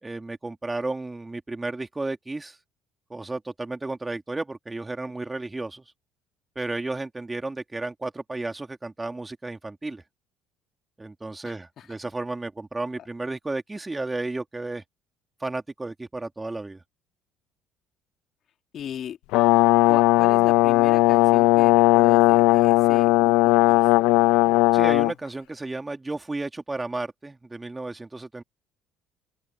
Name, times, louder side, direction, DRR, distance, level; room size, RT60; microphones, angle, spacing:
voice 1, 0.0-2.6 3.1-5.8 6.5-10.0 11.0-14.8 15.4-16.8 24.7-28.4, right 2 dB, 15° right, 3.2 m, -33 dB
voice 2, 11.4-11.9 18.7-19.2 19.9-23.8, left 9 dB, 50° left, 3.7 m, -37 dB
Brass instrument, 19.3-25.1, left 20 dB, 70° left, 1.1 m, -18 dB
open air
hypercardioid pair, 60°, 0 cm